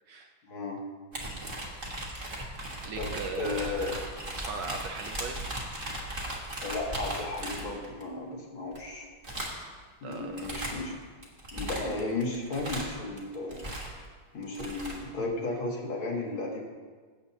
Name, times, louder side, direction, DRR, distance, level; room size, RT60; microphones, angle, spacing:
voice 1, 0.4-0.8 3.0-3.1 3.4-3.9 6.6-9.1 10.0-10.9 11.5-13.6 14.3-16.6, left 2 dB, 70° left, -1 dB, 2.3 m, -34 dB
sound 1, 1.1-8.0 8.7-8.9 9.2-9.7 10.1-10.9 11.2-14.1 14.4-15.0, right 1 dB, 25° right, 1.6 m, -37 dB
voice 2, 2.8-4.0 4.4-5.4 10.0-10.4, right 4 dB, 70° right, 4 dB, 1.1 m, -39 dB
17.0 x 7.9 x 2.8 m, 1.5 s
omnidirectional pair, 2.3 m